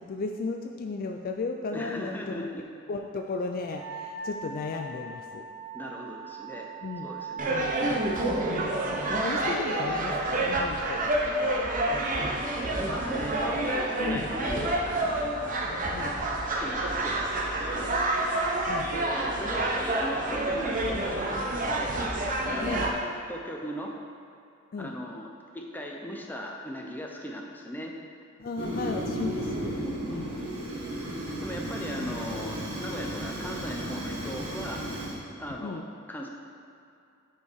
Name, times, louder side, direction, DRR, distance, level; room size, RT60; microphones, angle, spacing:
voice 1, 0.0-2.5 2.9-5.4 6.8-7.1 7.5-7.8 8.3-11.6 14.0-14.3 15.9-16.2 18.7-18.9 22.6-22.9 24.7-24.9 28.4-30.3 32.0-32.1 35.6-35.9, left 3 dB, 45° left, 3 dB, 0.4 m, -35 dB
voice 2, 1.7-2.6 5.7-6.7 7.0-8.2 12.6-15.1 15.4-18.0 18.9-22.0 22.4-23.9 24.8-25.3 25.5-27.9 29.8-30.3 31.4-34.8 35.4-36.3, equal, 10° left, 0 dB, 0.7 m, -38 dB
Wind instrument woodwind instrument, 3.7-9.3, right 4 dB, 70° right, 1.5 m, -40 dB
sound 1, 7.4-22.9, right 1 dB, 40° right, 0.8 m, -28 dB
Fire, 28.6-35.2, right 1 dB, 90° right, 1.6 m, -34 dB
8.6 x 4.5 x 4.7 m, 2.6 s
head